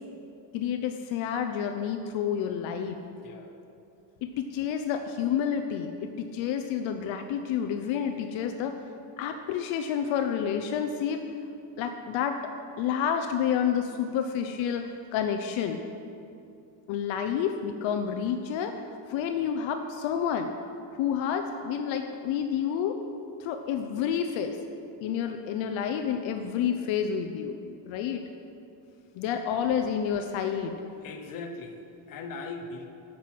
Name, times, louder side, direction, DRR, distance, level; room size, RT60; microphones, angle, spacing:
voice 1, 0.5-3.0 4.2-8.8 9.2-11.3 11.8-12.4 12.8-15.8 16.9-18.8 19.1-20.5 20.9-23.0 23.4-24.6 25.0-27.6 27.8-28.2 29.2-30.8, left 8 dB, 80° left, 6 dB, 0.8 m, -29 dB
voice 2, 3.2-3.6 31.0-32.9, left 3 dB, 45° left, 4 dB, 1.1 m, -40 dB
10.5 x 7.8 x 6.0 m, 2.6 s
cardioid pair, 160°, 46 cm